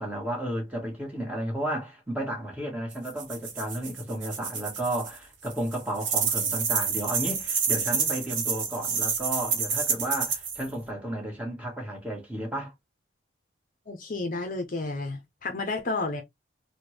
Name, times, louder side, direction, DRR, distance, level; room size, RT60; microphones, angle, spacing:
voice 1, 0.0-12.7, right 1 dB, 5° right, 1.2 m, -33 dB
sound 1, 2.9-5.2 5.4-10.7, right 6 dB, 65° right, 0.9 m, -28 dB
voice 2, 13.9-16.2, left 3 dB, 40° left, 0.6 m, -31 dB
3.4 x 2.2 x 3.0 m
head